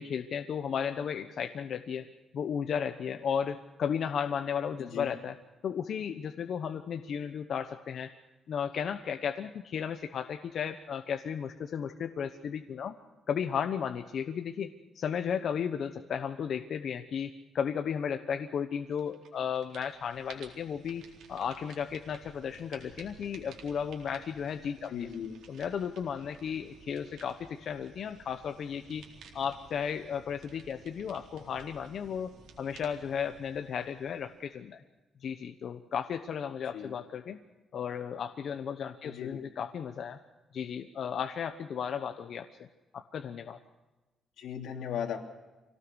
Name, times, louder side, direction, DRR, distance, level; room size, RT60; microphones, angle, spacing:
voice 1, 0.0-2.1 2.3-5.4 5.6-8.1 8.5-12.9 13.3-21.0 21.3-24.9 25.5-29.0 29.3-34.8 35.2-37.4 37.7-40.2 40.5-42.7 42.9-43.6, left 7 dB, 55° left, 7 dB, 1.0 m, -34 dB
sound 1, 18.9-19.3 19.6-34.6, right 5 dB, 85° right, 4.0 m, -55 dB
voice 2, 24.9-25.4 36.7-36.9 39.0-39.4 44.4-45.2, left 8 dB, 85° left, 4 dB, 2.9 m, -37 dB
25.5 x 18.0 x 6.4 m, 1.1 s
cardioid pair, 150°, 0 cm